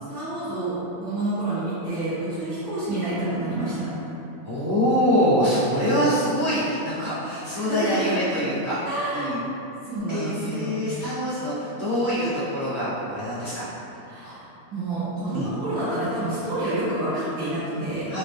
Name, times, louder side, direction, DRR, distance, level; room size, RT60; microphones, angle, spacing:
voice 1, 0.1-3.9 7.5-8.2 8.8-9.3 9.9-10.8 14.1-18.1, right 1 dB, 90° right, -15 dB, 1.5 m, -28 dB
voice 2, 4.4-8.8 9.1-9.4 10.1-14.4 15.3-15.5 18.1-18.2, equal, 35° left, -14 dB, 1.5 m, -25 dB
4.1 x 2.0 x 3.4 m, 2.9 s
omnidirectional pair, 1.5 m